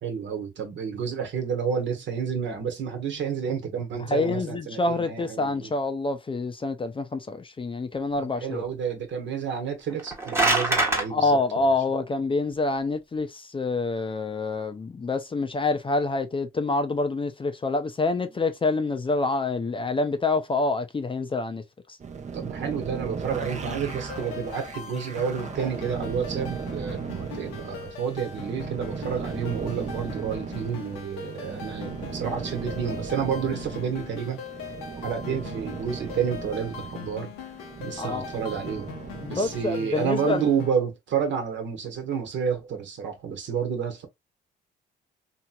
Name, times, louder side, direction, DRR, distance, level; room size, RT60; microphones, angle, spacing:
voice 1, 0.0-5.7 8.2-11.4 22.3-34.4 35.0-37.3 37.8-38.9 39.2-44.1, right 7 dB, 65° right, 1.1 m, -30 dB
voice 2, 4.1-8.7 11.1-21.6 21.9-22.0 38.0-38.3 39.2-40.5, left 3 dB, 25° left, 0.5 m, -27 dB
sound 1, 9.9-11.0, right 2 dB, 10° right, 1.1 m, -23 dB
sound 2, 22.0-39.7, right 5 dB, 35° right, 0.7 m, -37 dB
sound 3, 23.4-40.7, left 8 dB, 90° left, 0.8 m, -41 dB
2.9 x 2.9 x 2.2 m
supercardioid pair, 70°, 21 cm